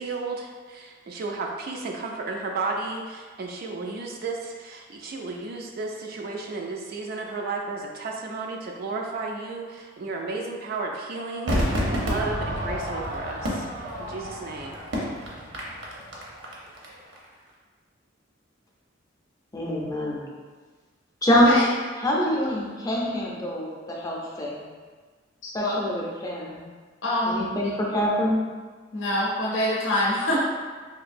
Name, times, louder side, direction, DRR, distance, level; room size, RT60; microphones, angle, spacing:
voice 1, 0.0-13.7 14.1-14.8, right 3 dB, 55° right, 1 dB, 0.3 m, -33 dB
Crowd / Fireworks, 11.5-16.9 17.1-17.2, equal, 75° right, 0.7 m, -29 dB
voice 2, 19.5-20.2 21.2-21.6 22.0-24.7 25.5-26.6 27.3-28.5, equal, 20° left, -3 dB, 0.5 m, -24 dB
voice 3, 25.4-25.7 27.0-27.4 28.9-30.4, left 1 dB, 80° left, -6 dB, 0.6 m, -25 dB
3.8 x 2.6 x 2.5 m, 1.5 s
head